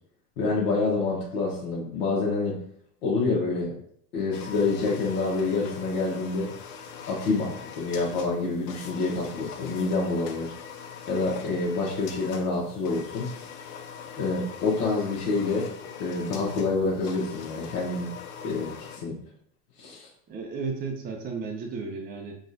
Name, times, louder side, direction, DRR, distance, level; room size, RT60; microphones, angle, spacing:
voice 1, 0.4-2.6 3.0-3.7 4.1-6.5 7.1-10.5 11.1-13.3 14.2-15.7 16.0-18.1 18.4-19.2 19.8-20.1, left 3 dB, 60° left, -4 dB, 1.1 m, -27 dB
sound 1, 4.3-19.0, left 7 dB, 80° left, 0.7 m, -42 dB
voice 2, 20.3-22.4, right 4 dB, 20° right, 2 dB, 0.4 m, -34 dB
4.0 x 2.4 x 2.6 m, 0.65 s
hypercardioid pair, 90°, 46 cm